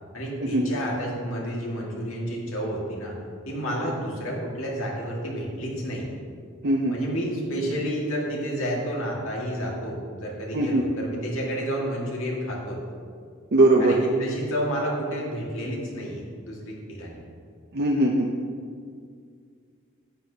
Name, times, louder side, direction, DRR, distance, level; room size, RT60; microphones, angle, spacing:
voice 1, 0.1-3.1 3.5-6.0 6.9-12.8 13.8-17.2, equal, 75° left, -3 dB, 1.9 m, -30 dB
voice 2, 6.6-6.9 10.5-10.8 13.5-14.0 17.7-18.3, right 2 dB, 50° right, 0 dB, 0.6 m, -20 dB
11.0 x 8.1 x 2.8 m, 2.2 s
head